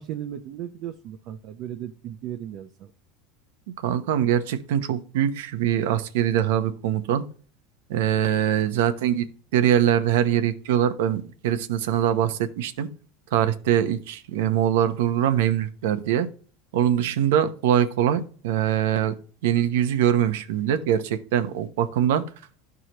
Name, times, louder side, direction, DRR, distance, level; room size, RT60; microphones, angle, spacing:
voice 1, 0.0-2.9, right 11 dB, 50° right, 0.6 m, -36 dB
voice 2, 3.8-7.2 7.9-9.3 9.5-12.9 13.3-16.3 16.7-19.1 19.4-22.2, right 10 dB, 85° right, 0.8 m, -23 dB
12.5 x 4.8 x 3.0 m
supercardioid pair, 140°, 0 cm